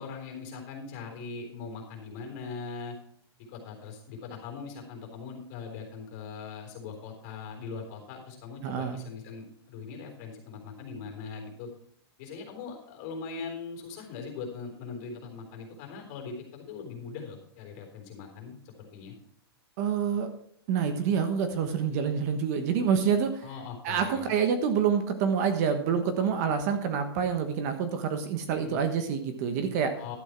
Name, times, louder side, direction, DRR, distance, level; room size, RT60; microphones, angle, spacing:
voice 1, 0.0-2.9 3.5-11.7 12.2-19.1 23.4-24.3 28.5-28.8 30.0-30.1, left 5 dB, 35° left, 3 dB, 3.7 m, -41 dB
voice 2, 8.6-9.0 19.8-20.3 20.7-23.5 23.8-29.9, right 7 dB, 35° right, 8 dB, 1.2 m, -27 dB
12.0 x 8.2 x 4.5 m, 0.65 s
hypercardioid pair, 160°, 14 cm